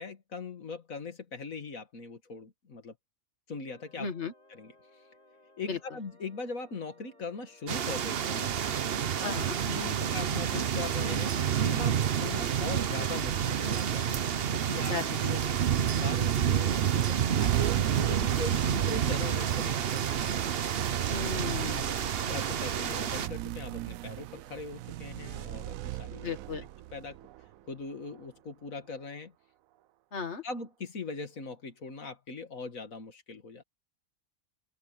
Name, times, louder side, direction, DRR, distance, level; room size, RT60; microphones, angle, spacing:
voice 1, 0.0-2.9 3.5-4.1 4.5-5.0 5.6-8.6 9.2-9.3 9.6-14.2 14.5-15.0 15.2-20.4 21.4-21.8 22.3-26.3 26.9-27.2 27.6-29.3 30.4-33.6, left 4 dB, 75° left, 2.3 m, -41 dB
sound 1, 3.7-12.4, left 2 dB, 30° left, 5.2 m, -61 dB
voice 2, 4.0-4.3 5.7-5.8 9.2-9.5 14.8-15.2 21.1-22.1 26.2-26.7 30.1-30.4, left 5 dB, 55° left, 2.0 m, -35 dB
sound 2, 7.7-23.3, right 9 dB, 50° right, 0.9 m, -29 dB
sound 3, 17.4-28.2, right 15 dB, 80° right, 1.0 m, -38 dB
open air
omnidirectional pair, 1.4 m